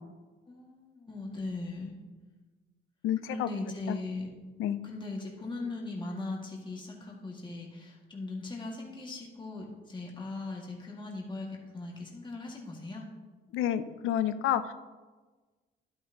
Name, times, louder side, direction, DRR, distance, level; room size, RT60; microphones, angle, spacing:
voice 1, 0.5-1.9 3.2-4.3 4.8-13.0, left 2 dB, 25° left, -2 dB, 2.1 m, -39 dB
voice 2, 3.0-3.5 3.9-4.0 4.6-4.8 13.5-14.7, left 11 dB, 85° left, 12 dB, 0.6 m, -29 dB
11.0 x 9.6 x 3.0 m, 1.3 s
cardioid pair, 90°, 20 cm